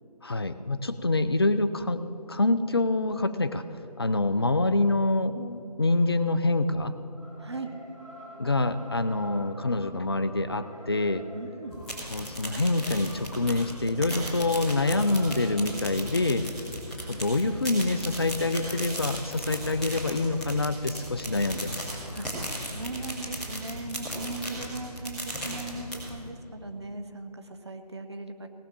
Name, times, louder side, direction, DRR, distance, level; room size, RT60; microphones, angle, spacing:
voice 1, 0.2-2.0 2.3-3.6 4.0-6.9 8.4-11.2 12.1-16.5 17.1-21.8, left 2 dB, 35° left, 12 dB, 0.5 m, -26 dB
sound 1, 3.2-22.2, equal, 20° left, 3.3 m, -51 dB
voice 2, 7.4-7.7 11.4-11.7 22.1-22.3 22.7-28.5, right 2 dB, 40° right, 7 dB, 0.9 m, -38 dB
sound 2, 11.7-26.3, equal, ahead, 0.8 m, -37 dB
18.0 x 6.4 x 7.1 m, 2.7 s
figure-of-eight pair, 160°, 21 cm